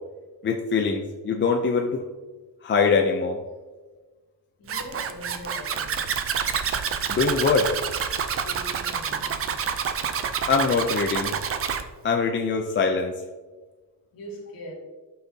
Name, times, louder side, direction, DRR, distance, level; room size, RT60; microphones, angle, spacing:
voice 1, 0.4-2.0 2.6-3.4 7.1-7.7 10.5-11.3 12.0-13.1, left 5 dB, 25° left, 0.5 m, -23 dB
voice 2, 4.6-6.1 8.4-9.5 14.1-14.7, equal, 50° left, 2.4 m, -41 dB
Zipper (clothing), 4.7-11.8, right 7 dB, 35° right, 0.5 m, -28 dB
12.0 x 5.8 x 2.8 m
cardioid pair, 160°, 44 cm